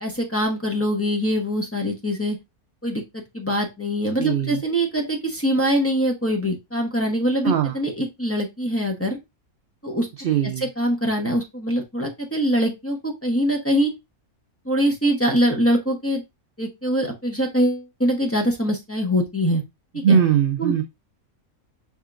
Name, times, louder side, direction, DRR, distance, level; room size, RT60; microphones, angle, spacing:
voice 1, 0.0-2.4 2.8-9.2 9.8-10.1 10.8-13.9 14.7-16.2 16.6-19.6 20.1-20.2 20.6-20.7, equal, 10° left, -1 dB, 0.8 m, -23 dB
voice 2, 4.2-4.6 7.4-7.7 10.2-10.7 19.9-20.8, right 8 dB, 75° right, 7 dB, 0.5 m, -20 dB
5.6 x 3.6 x 2.4 m, 0.21 s
omnidirectional pair, 1.5 m